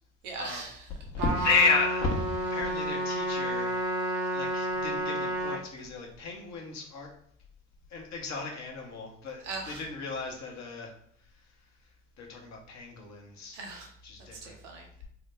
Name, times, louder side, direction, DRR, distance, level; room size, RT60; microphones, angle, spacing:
voice 1, 0.2-0.9 9.4-9.8 13.5-13.9 14.3-15.1, right 3 dB, 85° right, 2 dB, 0.7 m, -40 dB
voice 2, 1.1-3.7 4.3-7.1 7.9-10.9 11.3-11.4 12.2-13.6 14.0-14.6, left 4 dB, 50° left, 1 dB, 0.9 m, -32 dB
Trumpet, 1.2-5.6, right 1 dB, 55° right, 0.8 m, -31 dB
2.7 x 2.1 x 3.3 m, 0.67 s
hypercardioid pair, 50°, 35 cm